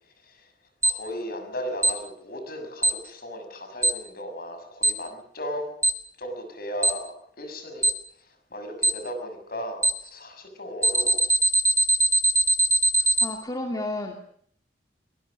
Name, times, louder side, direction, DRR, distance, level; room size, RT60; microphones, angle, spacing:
voice 1, 0.8-5.7 6.2-7.9 8.2-11.2, equal, 50° left, 7 dB, 6.9 m, -36 dB
Alarm, 0.8-0.9 1.8-1.9 2.8-2.9 3.8-3.9 4.8-4.9 5.8-5.9 6.8-6.9 7.8-7.9 8.8-8.9 9.8-9.9 10.8-13.3, right 2 dB, 15° right, 2.2 m, -20 dB
voice 2, 13.2-14.2, left 1 dB, 20° left, 2 dB, 2.4 m, -31 dB
22.5 x 20.5 x 6.6 m, 0.63 s
head